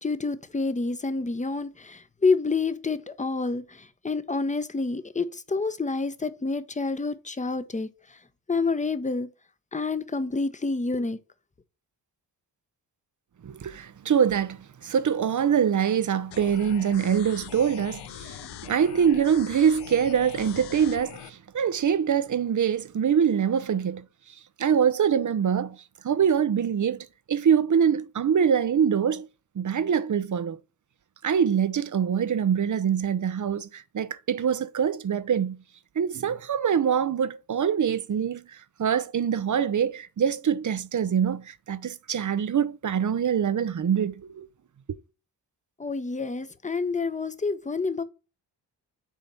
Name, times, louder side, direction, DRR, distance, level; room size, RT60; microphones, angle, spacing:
voice 1, 0.0-7.9 8.5-9.3 9.7-11.2 45.8-48.0, left 3 dB, 15° left, 0.9 m, -28 dB
voice 2, 13.4-24.0 24.6-25.8 26.0-29.3 29.6-30.6 31.2-35.6 36.0-44.5 44.9-45.0, right 8 dB, 45° right, 0.7 m, -24 dB
sound 1, 16.3-21.3, left 11 dB, 70° left, 0.7 m, -42 dB
7.2 x 4.2 x 5.4 m
cardioid pair, 60°, 43 cm